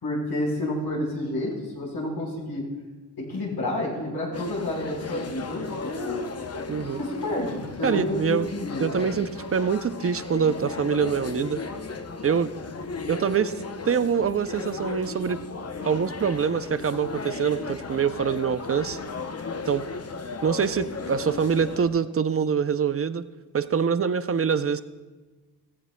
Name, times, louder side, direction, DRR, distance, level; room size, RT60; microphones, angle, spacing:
voice 1, 0.0-2.6 3.2-6.2 7.0-8.9, left 1 dB, 90° left, -3 dB, 4.2 m, -29 dB
sound 1, 4.3-21.9, left 4 dB, 40° left, 0.7 m, -36 dB
voice 2, 6.7-7.0 7.8-8.5 8.8-11.6 12.2-12.5 13.1-13.5 13.8-15.4 15.9-19.0 19.7-19.8 20.4-23.2 23.5-24.8, right 6 dB, 40° right, 12 dB, 0.5 m, -25 dB
16.5 x 16.0 x 2.2 m, 1.2 s
wide cardioid pair, 140°, 38 cm